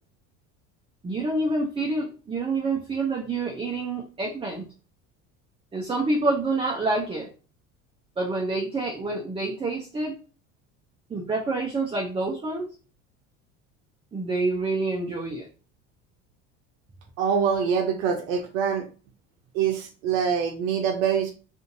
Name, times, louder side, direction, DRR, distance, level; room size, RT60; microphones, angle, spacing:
voice 1, 1.0-4.6 5.7-7.3 8.2-10.1 11.1-12.7 14.1-15.5, right 2 dB, 15° right, -1 dB, 0.5 m, -27 dB
voice 2, 17.2-18.9 19.5-21.3, right 7 dB, 80° right, 3 dB, 0.7 m, -24 dB
2.6 x 2.5 x 2.6 m, 0.36 s
hypercardioid pair, 80°, 40 cm